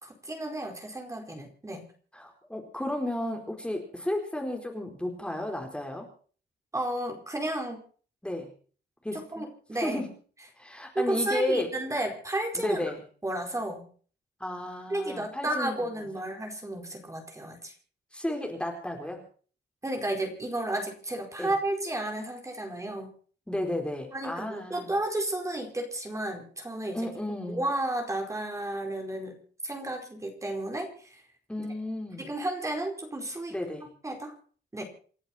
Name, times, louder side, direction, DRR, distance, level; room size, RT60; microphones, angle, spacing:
voice 1, 0.0-1.8 6.7-7.8 9.3-10.0 10.9-12.8 13.2-13.8 14.9-17.7 19.8-23.1 24.1-27.1 27.5-29.4 29.6-31.2 31.6-31.7 32.2-33.6 34.0-34.3 34.7-34.8, right 1 dB, 15° right, 3 dB, 4.7 m, -32 dB
voice 2, 2.1-6.1 8.2-8.5 9.0-9.5 9.8-10.1 10.6-11.7 12.5-13.0 14.4-16.1 18.1-19.2 21.4-21.5 23.5-24.9 26.9-27.6 31.5-32.2 33.5-33.9, left 1 dB, 5° left, 2 dB, 4.4 m, -33 dB
29.0 x 11.0 x 4.3 m, 0.43 s
wide cardioid pair, 145°, 18 cm